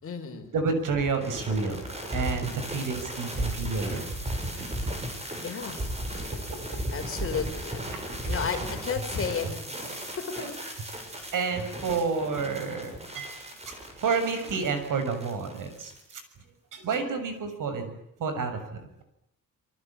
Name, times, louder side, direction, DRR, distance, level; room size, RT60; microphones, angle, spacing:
voice 1, 0.0-0.5 5.4-5.8 6.9-7.8 8.2-10.4, left 6 dB, 40° left, 5 dB, 5.2 m, -33 dB
voice 2, 0.5-1.8 2.1-4.1 4.6-4.9 10.4-10.5 11.3-13.4 13.7-13.8 14.0-16.2 16.7-17.9 18.2-18.6, right 4 dB, 70° right, 8 dB, 6.6 m, -29 dB
sound 1, 0.9-16.2, right 1 dB, 20° right, 7.3 m, -36 dB
27.0 x 24.0 x 8.7 m, 0.81 s
wide cardioid pair, 175°, 33 cm